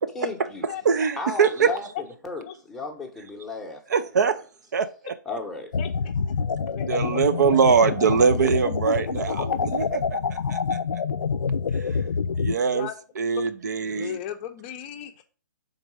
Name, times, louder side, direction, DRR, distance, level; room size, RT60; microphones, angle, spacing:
voice 1, 0.1-0.7 1.2-1.9 2.2-4.0 5.3-5.7, left 3 dB, 5° left, 0.9 m, -34 dB
voice 2, 0.8-1.7 3.9-4.4 4.7-5.1 6.9-10.8 12.4-12.9 13.2-14.2, right 6 dB, 65° right, 0.6 m, -22 dB
sound 1, 5.7-12.5, left 5 dB, 85° left, 0.4 m, -27 dB
voice 3, 13.9-15.2, left 10 dB, 25° left, 0.6 m, -35 dB
5.2 x 3.9 x 4.7 m
hypercardioid pair, 150°, 10 cm